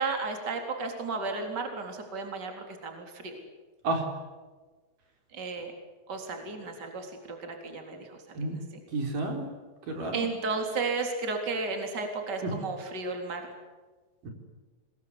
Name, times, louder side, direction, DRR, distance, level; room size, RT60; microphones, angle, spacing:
voice 1, 0.0-3.4 5.3-5.7 6.1-8.5 10.1-13.5, right 4 dB, 30° right, 4 dB, 4.2 m, -33 dB
voice 2, 8.9-9.5 9.9-10.3 12.4-12.5 14.2-14.3, right 2 dB, 65° right, 3 dB, 5.5 m, -30 dB
25.5 x 21.5 x 9.8 m, 1.3 s
omnidirectional pair, 4.1 m